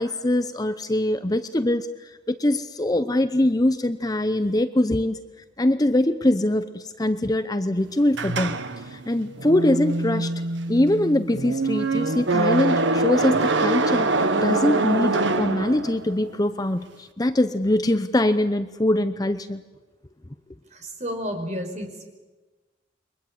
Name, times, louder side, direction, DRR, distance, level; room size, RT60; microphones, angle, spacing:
voice 1, 0.0-5.2 5.6-8.6 8.9-10.3 10.7-19.6, left 1 dB, 20° left, 10 dB, 0.8 m, -23 dB
sound 1, 8.1-16.2, right 2 dB, 75° right, 1.4 m, -24 dB
voice 2, 20.7-22.1, equal, 40° right, 4 dB, 5.0 m, -31 dB
29.0 x 23.5 x 8.0 m, 1.2 s
head